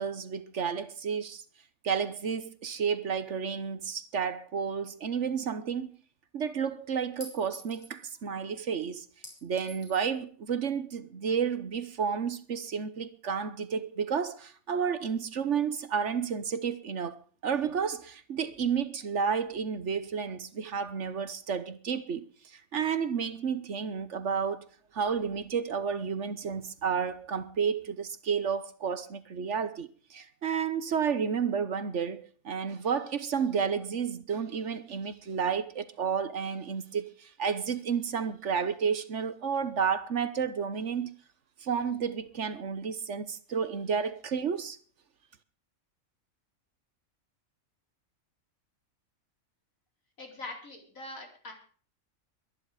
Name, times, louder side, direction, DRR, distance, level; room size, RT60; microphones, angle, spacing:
voice 1, 0.0-1.4 1.8-5.9 6.3-9.1 9.4-17.2 17.4-24.7 24.9-41.2 41.6-44.8, right 6 dB, 60° right, 1.3 m, -31 dB
Chink clink, 5.5-5.6 7.2-8.0 9.2-10.1, left 1 dB, 50° left, 5.7 m, -48 dB
voice 2, 50.2-51.5, left 2 dB, 70° left, 4.7 m, -42 dB
22.5 x 10.5 x 4.9 m
omnidirectional pair, 1.4 m